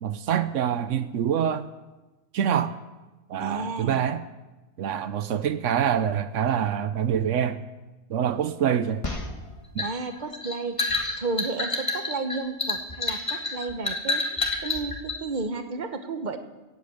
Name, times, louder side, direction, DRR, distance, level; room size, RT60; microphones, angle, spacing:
voice 1, 0.0-1.7 2.3-2.8 3.3-4.2 4.8-7.6 8.1-9.0 9.7-9.9, right 9 dB, 85° right, 12 dB, 1.1 m, -25 dB
voice 2, 3.4-4.0 9.8-10.8 11.2-14.2 14.6-16.4, right 3 dB, 40° right, 7 dB, 1.2 m, -32 dB
sound 1, 9.0-15.2, left 2 dB, 25° left, 1.7 m, -29 dB
18.0 x 8.6 x 7.9 m, 1.1 s
omnidirectional pair, 1.2 m